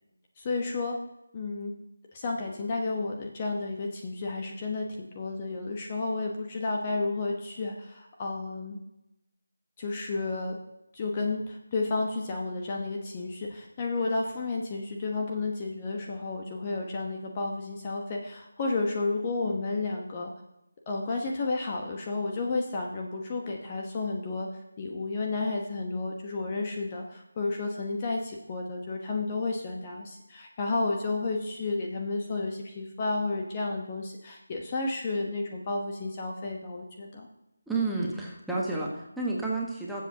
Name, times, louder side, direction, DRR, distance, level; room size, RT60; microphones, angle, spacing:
voice 1, 0.4-1.0 1.3-1.7 2.1-8.8 9.8-10.6 10.9-20.3 20.9-24.5 24.8-37.3, left 3 dB, 25° left, 0 dB, 1.1 m, -32 dB
voice 2, 37.7-40.0, right 3 dB, ahead, -5 dB, 1.4 m, -30 dB
19.5 x 7.6 x 2.9 m, 0.90 s
figure-of-eight pair, 160°, 0 cm